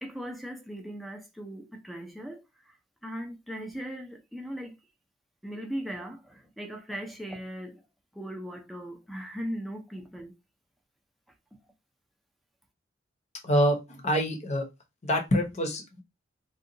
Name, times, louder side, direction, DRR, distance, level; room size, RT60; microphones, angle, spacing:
voice 1, 0.0-2.7 3.0-4.8 5.4-7.8 8.1-10.3, equal, ahead, 0.6 m, -38 dB
voice 2, 13.4-14.6 15.0-16.0, equal, 40° left, 0.9 m, -26 dB
2.7 x 2.4 x 3.8 m
head